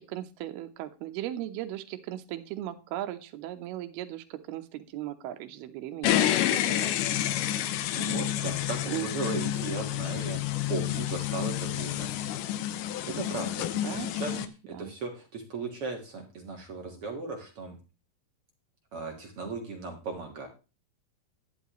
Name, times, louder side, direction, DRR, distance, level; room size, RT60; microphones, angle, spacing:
voice 1, 0.0-6.9 7.9-8.0 8.9-9.1 13.8-14.9, right 13 dB, 80° right, 8 dB, 2.8 m, -38 dB
sound 1, 6.0-14.5, left 12 dB, 80° left, 1.9 m, -29 dB
voice 2, 8.0-10.4 10.7-12.1 13.0-17.8 18.9-20.5, right 3 dB, 50° right, 2 dB, 1.9 m, -37 dB
11.5 x 10.5 x 3.1 m, 0.31 s
omnidirectional pair, 4.5 m